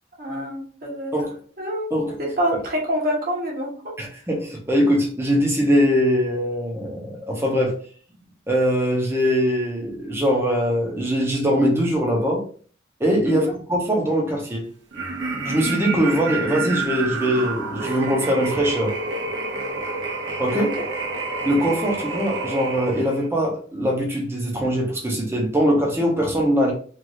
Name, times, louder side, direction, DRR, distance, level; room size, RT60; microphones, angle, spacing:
voice 1, 0.2-1.1 1.6-1.9 2.2-3.9 13.2-13.5 20.5-20.9, equal, 50° right, 1.2 m, -27 dB
voice 2, 4.0-7.8 8.5-12.4 13.0-14.7 15.4-19.0 20.4-20.7 21.4-26.7, equal, 15° right, 0.8 m, -22 dB
sound 1, 14.9-23.3, right 3 dB, 90° right, 1.0 m, -28 dB
3.1 x 2.6 x 2.6 m
head